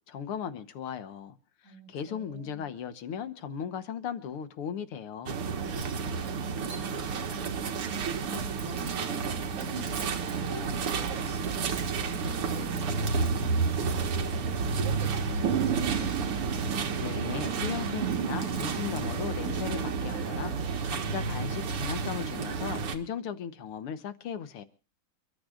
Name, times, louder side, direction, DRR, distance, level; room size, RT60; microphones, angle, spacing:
voice 1, 0.1-1.4 1.6-5.4 17.0-20.6 20.9-24.6, left 8 dB, 80° left, 2.0 m, -37 dB
voice 2, 1.6-2.7 6.0-7.8 8.1-16.3, right 1 dB, 35° right, 3.7 m, -46 dB
sound 1, 5.3-22.9, right 5 dB, 85° right, 2.5 m, -30 dB
29.0 x 13.0 x 2.5 m
omnidirectional pair, 2.4 m